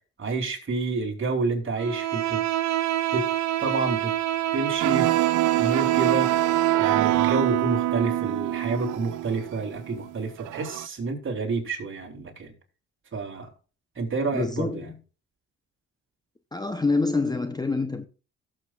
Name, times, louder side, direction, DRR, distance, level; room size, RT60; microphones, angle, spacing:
voice 1, 0.2-2.4 3.1-3.2 3.6-4.1 4.5-5.1 5.5-6.3 6.8-12.5 13.1-13.5 13.9-14.8, right 3 dB, 40° right, 3.4 m, -29 dB
Bowed string instrument, 1.8-7.0, right 13 dB, 65° right, 1.0 m, -28 dB
sound 1, 4.8-10.9, right 15 dB, 85° right, 0.6 m, -25 dB
voice 2, 14.3-15.0 16.5-18.1, left 3 dB, 15° left, 0.7 m, -26 dB
17.5 x 7.5 x 2.4 m
cardioid pair, 90°, 30 cm